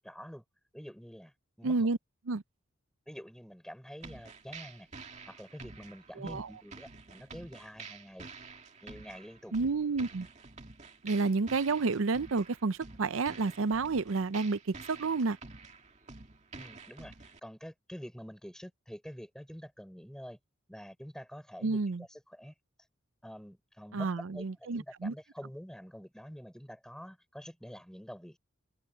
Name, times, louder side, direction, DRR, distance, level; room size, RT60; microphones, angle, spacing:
voice 1, 0.0-0.4 0.7-1.9 3.1-8.3 8.8-9.5 16.6-20.4 20.7-22.5 23.2-28.4, equal, 5° left, 6.4 m, -47 dB
voice 2, 1.6-2.0 2.3-2.4 6.2-6.5 9.5-10.3 11.0-15.4 21.6-22.0 23.9-25.1, right 4 dB, 75° right, 0.6 m, -30 dB
sound 1, 4.0-17.4, right 4 dB, 35° right, 2.1 m, -49 dB
head